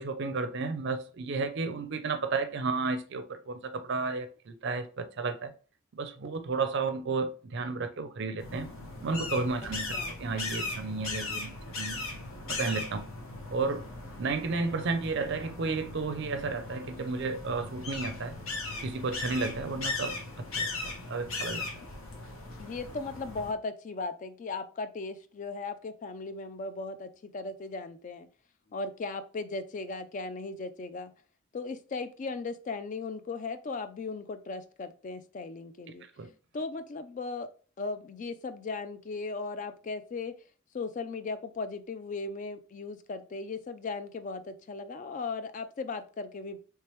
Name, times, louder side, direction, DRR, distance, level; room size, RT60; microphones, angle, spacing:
voice 1, 0.0-5.5 5.9-8.7 9.0-9.9 10.2-12.0 12.5-13.1 13.5-13.8 14.2-18.3 18.8-20.2 20.6-21.7 36.2-36.3, right 4 dB, 55° right, 0.5 m, -32 dB
sound 1, 8.4-23.5, left 3 dB, 75° left, 1.0 m, -38 dB
voice 2, 22.6-28.3 28.7-31.1 31.5-36.1 36.5-37.5 37.8-40.3 40.7-46.6, left 3 dB, 35° left, 0.3 m, -37 dB
3.3 x 3.2 x 3.0 m
head